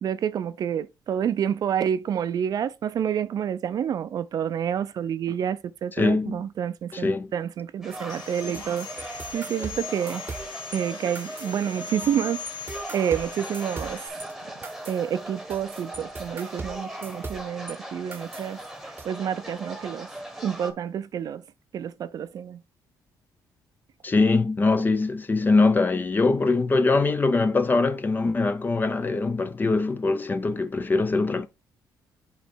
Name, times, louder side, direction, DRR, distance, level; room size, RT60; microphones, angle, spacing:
voice 1, 0.0-10.4 10.7-12.5 12.9-14.3 14.9-18.6 19.0-20.1 20.4-21.4 21.7-22.6, right 9 dB, 55° right, 0.5 m, -29 dB
voice 2, 6.0-6.4 6.9-7.3 24.0-31.5, left 3 dB, 25° left, 0.7 m, -22 dB
sound 1, 7.8-20.7, right 1 dB, ahead, 1.3 m, -39 dB
sound 2, 7.9-10.8 11.1-12.2 12.5-17.8 18.1-19.1, right 3 dB, 25° right, 1.0 m, -41 dB
Sawing, 8.1-14.1, left 5 dB, 85° left, 1.9 m, -40 dB
8.2 x 3.2 x 4.4 m
cardioid pair, 110°, 8 cm